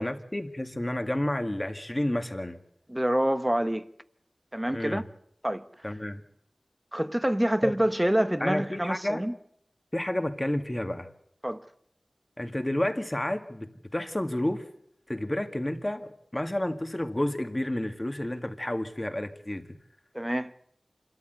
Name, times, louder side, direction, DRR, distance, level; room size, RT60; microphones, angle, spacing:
voice 1, 0.0-2.6 4.7-5.0 5.8-6.2 7.6-7.7 8.4-9.3 9.9-11.1 12.4-14.6 15.1-19.7, left 1 dB, 25° left, 2.1 m, -30 dB
voice 2, 2.9-3.9 4.5-5.0 5.4-5.7 6.9-9.3 11.4-11.6 20.1-20.5, right 1 dB, 15° right, 1.0 m, -26 dB
27.0 x 13.5 x 8.2 m
wide cardioid pair, 50°, 0 cm